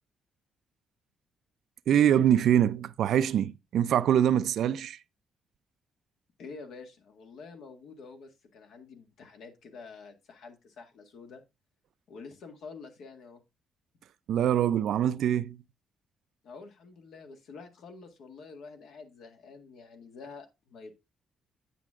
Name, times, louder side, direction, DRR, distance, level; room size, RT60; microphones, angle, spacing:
voice 1, 1.9-5.0 14.3-15.6, right 10 dB, 70° right, 0.4 m, -24 dB
voice 2, 6.4-11.4 12.1-13.4 16.4-20.9, left 4 dB, 75° left, 1.9 m, -48 dB
9.2 x 6.1 x 3.6 m
cardioid pair, 90°, 0 cm